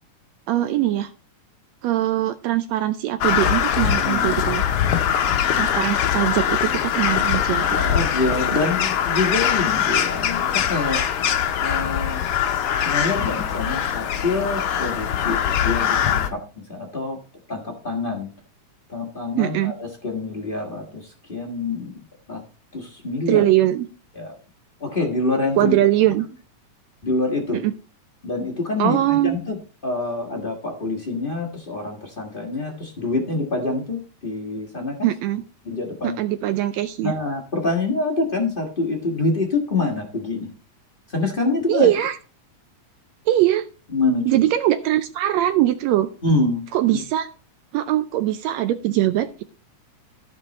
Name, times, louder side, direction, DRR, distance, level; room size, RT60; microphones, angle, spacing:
voice 1, 0.5-1.1 1.8-4.6 5.6-7.8 19.4-19.7 23.3-23.9 25.6-26.3 27.5-27.7 28.8-29.4 35.0-35.4 36.0-37.1 41.7-42.2 43.3-43.6 44.3-46.1 46.7-47.3 47.7-49.4, right 13 dB, 80° right, 10 dB, 1.6 m, -21 dB
Crow, 3.2-16.3, left 9 dB, 65° left, 1.5 m, -22 dB
voice 2, 4.0-4.5 7.6-11.0 11.6-12.2 12.8-17.2 17.5-18.3 18.9-21.9 22.3-22.4 22.7-23.4 24.1-24.4 24.8-25.8 27.0-27.6 28.2-29.6 29.8-35.1 35.6-36.2 37.0-40.5 41.1-41.9 43.9-44.4 46.2-46.6 46.9-47.0, left 3 dB, 35° left, 1 dB, 0.8 m, -26 dB
13.5 x 5.4 x 4.1 m, 0.37 s
omnidirectional pair, 3.4 m